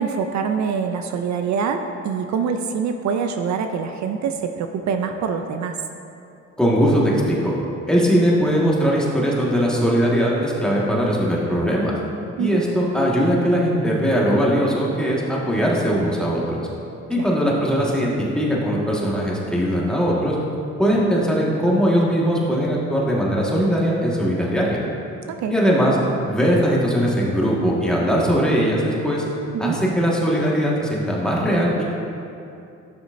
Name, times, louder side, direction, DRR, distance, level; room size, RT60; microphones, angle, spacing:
voice 1, 0.0-5.8 12.4-12.6 17.2-17.3 25.3-25.5 29.5-29.8, right 6 dB, 65° right, 6 dB, 0.5 m, -25 dB
voice 2, 6.6-7.5 7.9-11.9 12.4-16.6 17.1-20.4 20.8-24.8 25.5-26.0 26.3-29.2 29.6-31.8, equal, 5° left, -5 dB, 1.6 m, -20 dB
11.5 x 6.2 x 2.6 m, 2.7 s
cardioid pair, 90°, 30 cm